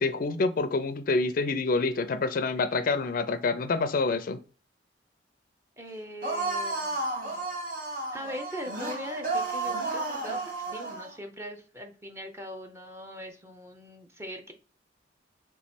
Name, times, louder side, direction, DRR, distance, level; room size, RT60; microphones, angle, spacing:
voice 1, 0.0-4.4, left 3 dB, 50° left, 0.4 m, -27 dB
voice 2, 5.8-7.1 8.1-14.5, equal, 15° right, 0.7 m, -41 dB
sound 1, 6.2-11.1, right 3 dB, 50° right, 1.3 m, -32 dB
3.5 x 3.1 x 4.2 m
head